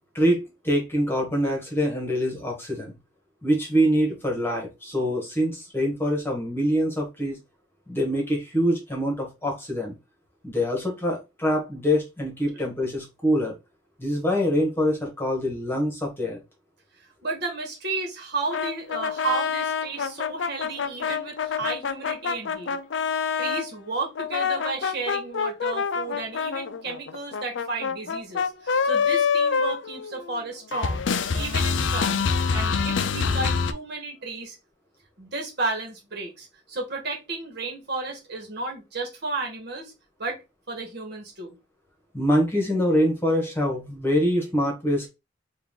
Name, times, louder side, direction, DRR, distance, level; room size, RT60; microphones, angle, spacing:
voice 1, 0.1-2.9 3.4-7.4 7.9-9.9 10.4-13.5 14.0-16.4 42.1-45.1, equal, 10° left, 1.5 m, -24 dB
voice 2, 17.2-22.8 23.4-31.0 31.3-34.6 35.2-39.9 40.2-40.4 40.7-41.5, right 3 dB, 60° right, 1.5 m, -33 dB
sound 1, 18.5-23.7 24.1-30.4 30.7-33.7, left 5 dB, 70° left, 0.5 m, -26 dB
4.7 x 2.6 x 3.7 m
head